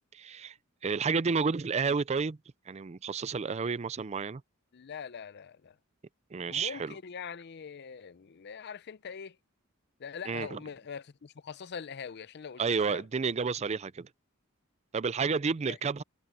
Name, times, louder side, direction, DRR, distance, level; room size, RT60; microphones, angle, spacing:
voice 1, 0.1-0.5 0.8-2.4 2.7-4.4 6.3-6.9 10.3-10.6 12.6-14.1 14.9-16.0, right 5 dB, 35° right, 0.4 m, -30 dB
voice 2, 4.7-5.8 6.5-9.4 10.0-13.0 15.7-15.8, left 6 dB, 55° left, 0.5 m, -43 dB
head